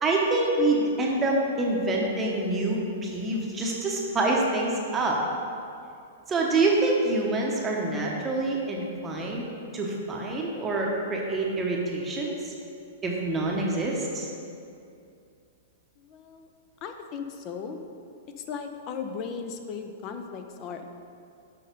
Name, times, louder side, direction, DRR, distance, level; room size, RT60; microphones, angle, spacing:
voice 1, 0.0-5.2 6.3-12.5 13.0-14.3, right 2 dB, 15° right, -2 dB, 0.9 m, -26 dB
voice 2, 16.0-16.5 16.8-17.8 18.4-21.0, left 6 dB, 30° left, 6 dB, 0.5 m, -37 dB
6.4 x 5.5 x 5.2 m, 2.5 s
hypercardioid pair, 160°, 0 cm